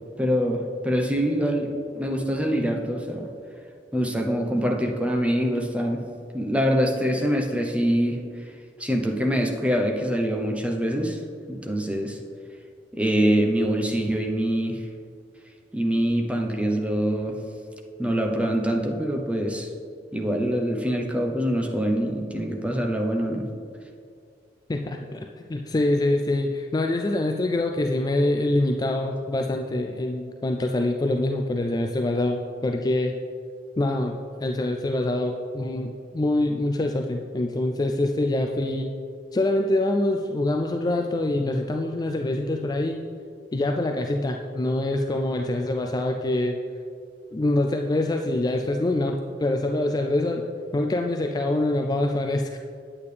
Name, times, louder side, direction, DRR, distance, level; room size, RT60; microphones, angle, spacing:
voice 1, 0.2-1.7 1.9-3.3 3.9-6.0 6.3-8.2 8.8-11.2 11.5-12.2 12.9-14.8 15.7-17.4 18.0-19.7 20.1-23.5, equal, 5° right, 1 dB, 0.8 m, -24 dB
voice 2, 24.7-33.2 33.8-38.9 39.3-43.0 43.5-46.6 47.3-50.4 50.7-52.6, left 1 dB, 20° left, 3 dB, 0.3 m, -25 dB
8.7 x 8.5 x 3.3 m, 2.2 s
head